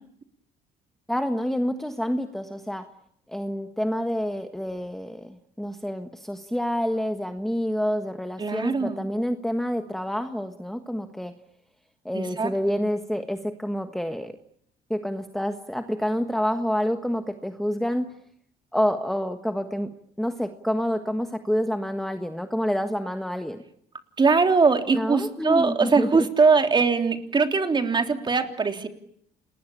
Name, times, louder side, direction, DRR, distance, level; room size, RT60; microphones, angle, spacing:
voice 1, 1.1-2.9 3.3-11.3 12.0-14.4 14.9-18.2 18.7-19.9 20.2-23.6 24.9-26.3, equal, ahead, 6 dB, 1.4 m, -28 dB
voice 2, 8.4-9.0 12.1-12.5 24.2-28.9, right 4 dB, 25° right, 5 dB, 3.3 m, -21 dB
29.0 x 20.5 x 8.7 m, 0.69 s
cardioid pair, 110°, 17 cm